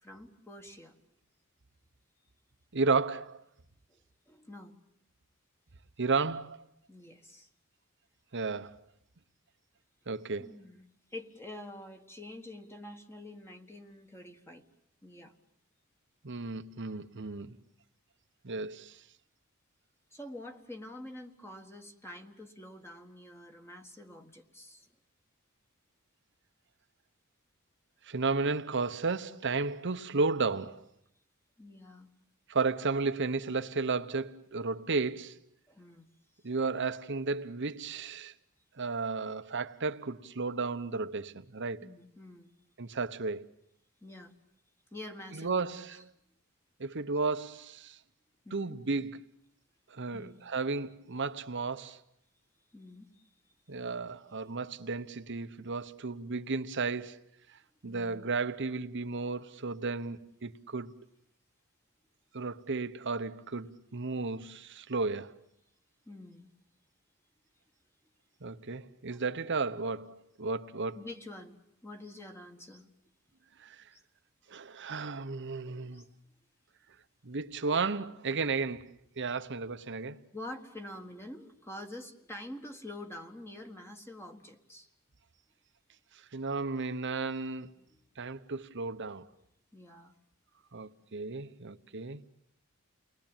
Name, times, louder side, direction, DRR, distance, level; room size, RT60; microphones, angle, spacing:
voice 1, 0.0-0.9 3.9-4.0 4.3-4.7 6.9-7.5 10.4-10.8 11.1-14.6 15.0-15.3 20.1-24.9 31.6-32.1 35.7-36.1 41.8-42.5 42.9-43.0 44.0-44.3 44.9-45.7 48.4-48.8 50.1-50.4 52.7-53.3 57.8-58.2 66.1-66.5 69.1-69.2 71.0-72.9 73.9-74.0 74.8-74.9 75.9-76.1 80.3-84.9 87.9-88.0 89.7-90.1, left 1 dB, 10° left, 1.6 m, -47 dB
voice 2, 2.7-3.4 6.0-6.6 8.3-8.8 10.1-10.6 16.2-17.6 18.4-19.0 28.1-30.8 32.5-35.4 36.4-38.3 38.8-41.9 42.8-43.5 45.3-46.1 46.8-48.0 48.5-49.2 49.9-52.0 53.7-57.2 57.8-60.9 62.3-65.4 68.4-71.0 73.6-73.8 74.5-76.0 77.2-80.2 86.3-87.7 88.2-89.3 90.7-92.2, right 4 dB, 60° right, 1.1 m, -33 dB
29.5 x 20.5 x 9.0 m
head